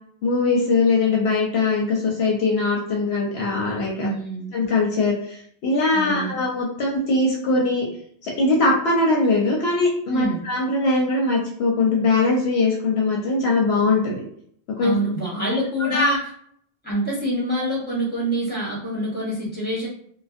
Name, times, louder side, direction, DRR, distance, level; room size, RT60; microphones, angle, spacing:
voice 1, 0.2-4.1 4.5-7.9 8.2-14.2 14.7-14.9 15.8-16.2, left 3 dB, 70° left, -2 dB, 0.8 m, -21 dB
voice 2, 4.0-4.5 5.9-6.4 10.1-10.4 14.8-16.2 16.8-19.9, right 1 dB, 10° left, -7 dB, 1.1 m, -26 dB
2.5 x 2.1 x 2.4 m, 0.64 s
omnidirectional pair, 1.2 m